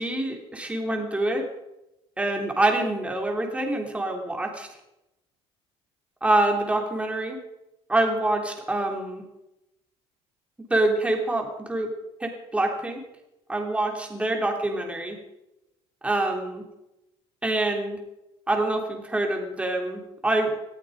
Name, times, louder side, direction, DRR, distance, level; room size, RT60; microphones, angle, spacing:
voice 1, 0.0-1.5 2.2-4.7 6.2-7.4 7.9-9.2 10.7-11.9 12.2-13.0 13.5-15.2 16.0-16.6 17.4-18.0 18.5-20.5, right 2 dB, 10° right, 2 dB, 3.7 m, -26 dB
19.5 x 14.0 x 5.2 m, 0.91 s
cardioid pair, 120°, 11 cm